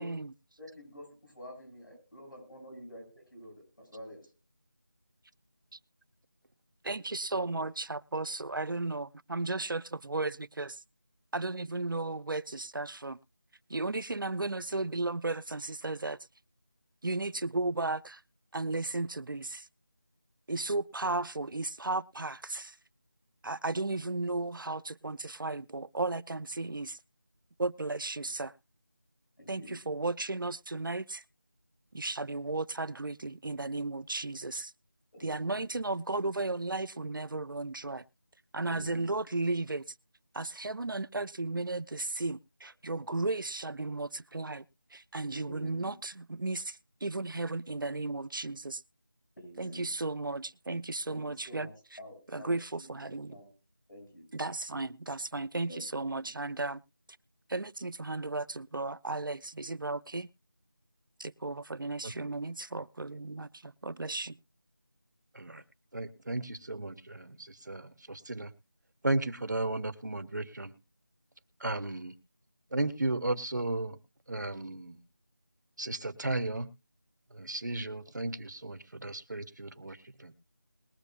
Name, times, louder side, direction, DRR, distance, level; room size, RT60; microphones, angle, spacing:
voice 1, 0.0-0.3 5.7-5.8 6.8-10.8 11.3-13.2 13.7-16.2 17.0-18.2 18.5-19.7 20.5-22.8 23.4-27.0 27.6-28.5 29.5-31.2 31.9-34.7 35.2-38.0 38.5-39.8 40.3-44.6 44.9-48.8 49.6-51.7 52.3-53.3 54.3-56.8 57.5-60.3 61.2-64.4, right 2 dB, 85° right, 0.7 m, -34 dB
voice 2, 0.6-4.2 29.4-29.8 35.1-35.7 38.7-39.1 45.3-46.0 49.4-49.9 51.1-52.9 53.3-53.5 53.9-54.3 55.7-55.9, equal, 85° left, 7.6 m, -48 dB
voice 3, 65.9-68.5 69.0-70.7 71.6-72.2 72.7-74.0 74.3-75.0 75.8-76.7 77.3-80.3, right 2 dB, 60° right, 1.3 m, -34 dB
21.5 x 8.1 x 2.4 m
figure-of-eight pair, 175°, 11 cm